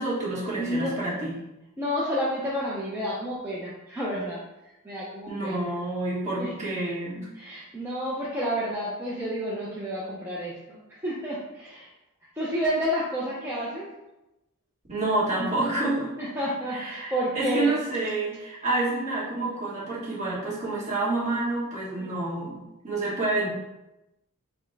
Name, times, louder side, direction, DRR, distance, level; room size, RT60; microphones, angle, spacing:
voice 1, 0.0-1.3 5.3-7.3 14.9-16.1 16.7-23.5, right 2 dB, 35° right, -7 dB, 1.5 m, -28 dB
voice 2, 0.6-1.0 1.8-5.7 6.4-6.5 7.3-11.9 12.4-13.9 16.2-17.7 22.0-22.1, equal, 10° right, -8 dB, 0.6 m, -30 dB
4.2 x 2.1 x 4.5 m, 0.93 s
head